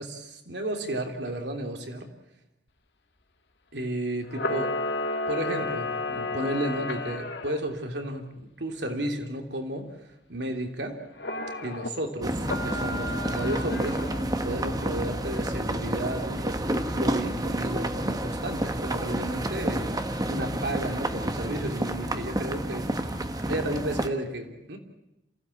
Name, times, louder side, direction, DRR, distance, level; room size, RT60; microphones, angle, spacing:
voice 1, 0.0-2.1 3.7-4.7 5.3-9.9 10.3-11.0 11.6-14.0 14.4-19.9 20.3-22.9 23.5-24.8, right 1 dB, 70° right, 4 dB, 3.1 m, -32 dB
Camera, 4.3-7.6 11.2-11.9 12.4-14.2, left 2 dB, 65° left, 2.0 m, -32 dB
sound 1, 12.2-24.1, right 1 dB, 20° right, 1.3 m, -30 dB
27.5 x 16.5 x 8.5 m, 0.91 s
head